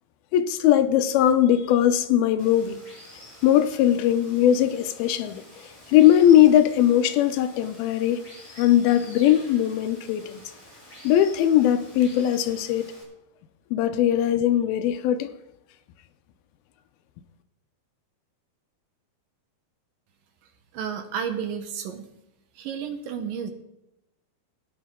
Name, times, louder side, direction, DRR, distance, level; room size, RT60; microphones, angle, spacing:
voice 1, 0.3-2.8 3.4-5.4 5.9-8.2 8.6-10.4 11.0-12.9 13.7-15.3, left 11 dB, 80° left, 2.4 m, -20 dB
Water, 2.4-13.0, left 1 dB, 5° left, 4.9 m, -48 dB
voice 2, 20.7-22.1 22.6-23.5, right 7 dB, 70° right, 2.4 m, -31 dB
20.5 x 9.7 x 3.7 m
omnidirectional pair, 4.4 m